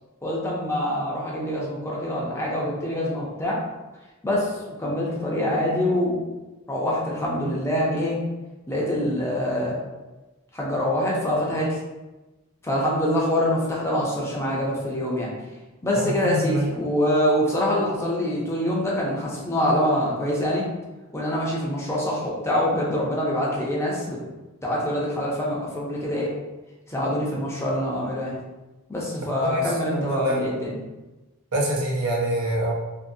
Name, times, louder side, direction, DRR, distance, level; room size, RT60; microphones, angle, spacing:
voice 1, 0.2-3.6 4.2-6.2 6.7-8.2 8.7-9.8 10.5-11.8 12.6-15.3 15.8-20.7 21.1-24.2 24.6-26.3 26.9-28.3 28.9-30.8, left 1 dB, 10° left, -4 dB, 0.5 m, -25 dB
voice 2, 16.0-16.7 29.2-29.7 29.9-30.4 31.5-32.7, right 1 dB, 85° right, -2 dB, 0.6 m, -26 dB
2.6 x 2.5 x 2.6 m, 1.1 s
head